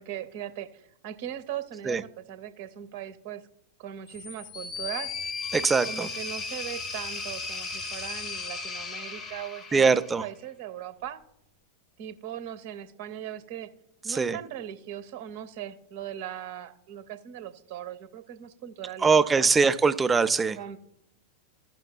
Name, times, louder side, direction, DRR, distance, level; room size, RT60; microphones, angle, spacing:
voice 1, 0.0-3.4 3.8-5.1 5.9-11.2 12.0-13.7 14.0-19.5 20.6-20.8, right 10 dB, 50° right, 10 dB, 0.7 m, -39 dB
sound 1, 4.1-10.3, left 4 dB, 30° left, 0.7 m, -36 dB
voice 2, 5.5-6.1 9.7-10.2 14.1-14.4 19.0-20.6, right 5 dB, 15° right, 13 dB, 0.4 m, -22 dB
16.0 x 5.9 x 2.2 m, 0.77 s
figure-of-eight pair, 90°, 0 cm